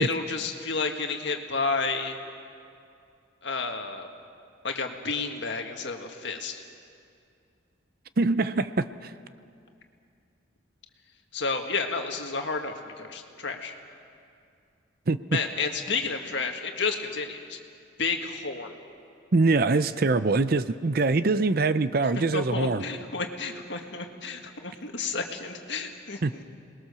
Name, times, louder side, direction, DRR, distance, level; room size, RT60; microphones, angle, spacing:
voice 1, 0.0-2.2 3.4-4.1 4.6-6.6 11.3-13.8 15.3-17.6 18.0-18.8 22.1-26.4, left 4 dB, 65° left, 4 dB, 1.8 m, -31 dB
voice 2, 8.2-9.1 15.1-15.2 19.3-22.8 26.2-26.3, right 3 dB, 50° right, 13 dB, 0.6 m, -23 dB
27.5 x 20.5 x 6.9 m, 2.4 s
head